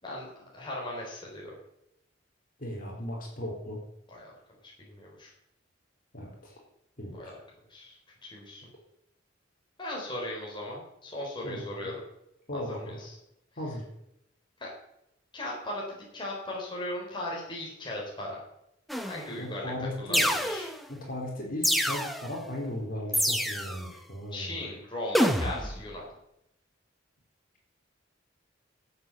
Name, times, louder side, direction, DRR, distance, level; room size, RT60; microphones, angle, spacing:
voice 1, 0.5-1.5 4.1-4.3 4.8-5.3 7.2-7.4 7.7-8.0 8.2-8.6 9.8-11.9 12.5-13.1 14.6-14.7 15.3-18.4 19.0-19.7 20.0-20.7 24.3-26.1, left 1 dB, 25° left, -3 dB, 4.0 m, -37 dB
voice 2, 2.6-3.8 6.1-6.6 7.0-7.3 11.4-11.7 12.5-13.0 13.6-13.8 19.4-20.3 20.9-24.7, left 1 dB, 50° left, -1 dB, 4.3 m, -37 dB
sound 1, 18.9-19.4 20.1-20.9 21.6-22.4 23.1-23.9 25.1-25.8, equal, ahead, 1.1 m, -27 dB
13.0 x 8.1 x 7.1 m, 0.82 s
head